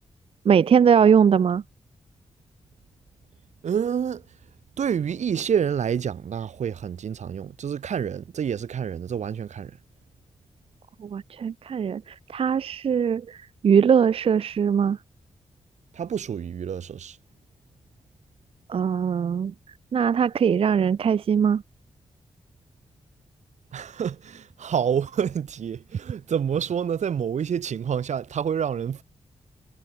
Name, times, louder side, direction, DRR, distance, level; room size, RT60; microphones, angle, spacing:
voice 1, 0.4-1.6 11.0-15.0 18.7-19.5 19.9-21.6, right 7 dB, 55° right, 0.6 m, -21 dB
voice 2, 3.6-4.2 4.8-9.8 15.9-17.2 23.7-29.0, right 8 dB, 85° right, 4.8 m, -28 dB
wide cardioid pair, 150°, 12 cm